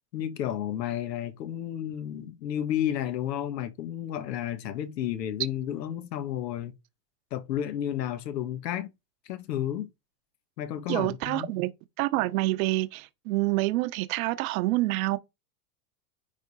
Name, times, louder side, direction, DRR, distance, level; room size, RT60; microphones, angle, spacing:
voice 1, 0.1-6.7 7.3-8.9 9.3-9.9 10.6-11.5, left 11 dB, 85° left, 1.4 m, -32 dB
voice 2, 10.9-11.7 12.0-15.2, right 19 dB, 60° right, 1.1 m, -27 dB
10.0 x 3.5 x 4.1 m
supercardioid pair, 135°, 48 cm